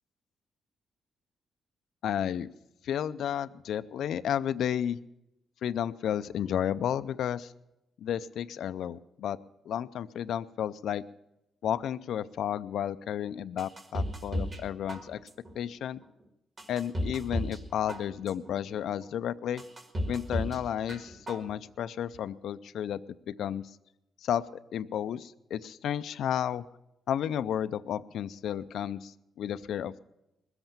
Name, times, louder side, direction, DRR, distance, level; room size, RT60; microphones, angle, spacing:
voice 1, 2.0-2.5 2.8-5.0 5.6-7.5 8.0-9.4 9.7-11.0 11.6-15.2 15.5-16.0 16.7-19.6 20.1-23.0 23.3-23.7 24.2-24.4 24.7-26.6 27.1-29.9, left 9 dB, 70° left, 13 dB, 0.4 m, -32 dB
sound 1, 13.6-14.6 14.9-15.5 16.0-16.1 16.6-17.6 17.9-18.5 19.0-19.1 19.6-20.6 20.9-21.5 21.8-21.9, equal, 30° right, 1.5 m, -34 dB
20.5 x 8.0 x 7.1 m, 0.89 s
cardioid pair, 150°, 0 cm